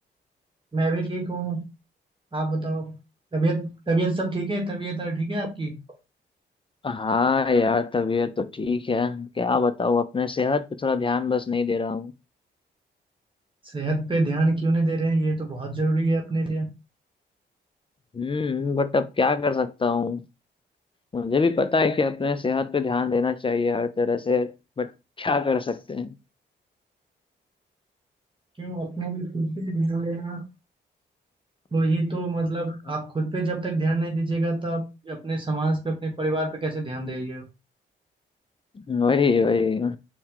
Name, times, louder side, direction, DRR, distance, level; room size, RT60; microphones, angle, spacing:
voice 1, 0.7-1.7 2.3-3.0 3.3-5.8 13.6-16.7 28.6-30.4 31.7-37.5, right 2 dB, 25° right, 1.1 m, -26 dB
voice 2, 6.8-12.1 18.1-20.2 21.1-24.9 25.2-26.1 38.9-40.0, left 4 dB, 25° left, 0.5 m, -24 dB
4.2 x 2.2 x 3.8 m
cardioid pair, 60°, 19 cm